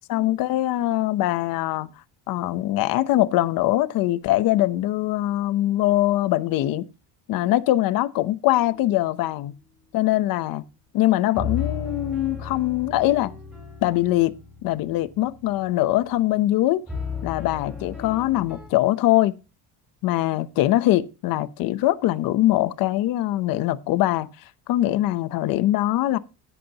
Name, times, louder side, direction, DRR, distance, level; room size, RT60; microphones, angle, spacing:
voice 1, 0.1-1.9 2.3-6.9 7.3-9.5 9.9-10.6 10.9-13.3 13.8-14.3 14.6-16.8 17.2-19.3 20.0-24.3 24.7-26.2, left 15 dB, 60° left, 0.8 m, -22 dB
sound 1, 8.5-9.1 11.3-16.2 16.9-18.7, left 6 dB, 5° right, 4.4 m, -35 dB
16.0 x 8.4 x 2.9 m
cardioid pair, 165°, 39 cm